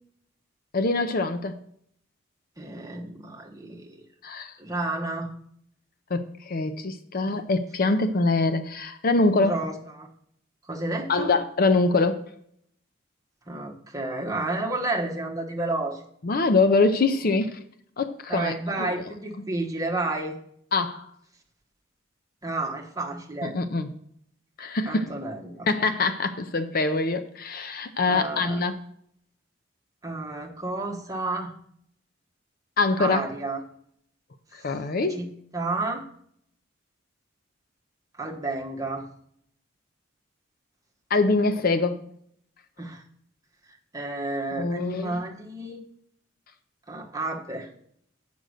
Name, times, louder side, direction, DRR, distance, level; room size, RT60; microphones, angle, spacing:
voice 1, 0.7-1.6 4.2-4.5 6.1-9.6 11.1-12.3 16.2-17.5 18.0-19.0 20.7-21.0 23.4-23.9 24.6-25.2 25.7-28.8 32.8-33.2 34.5-35.2 41.1-42.0 44.5-45.2, left 3 dB, 50° left, 9 dB, 0.6 m, -24 dB
voice 2, 2.6-4.0 4.6-5.3 9.4-10.1 10.7-11.3 13.5-16.0 17.2-17.3 18.3-20.4 22.4-23.6 24.9-25.7 28.1-28.6 30.0-31.5 33.0-33.6 34.6-34.7 35.1-35.3 35.5-36.0 38.2-39.1 42.8-43.0 43.9-45.8 46.9-47.7, right 2 dB, 20° right, 0 dB, 1.2 m, -31 dB
7.7 x 5.3 x 6.4 m, 0.66 s
head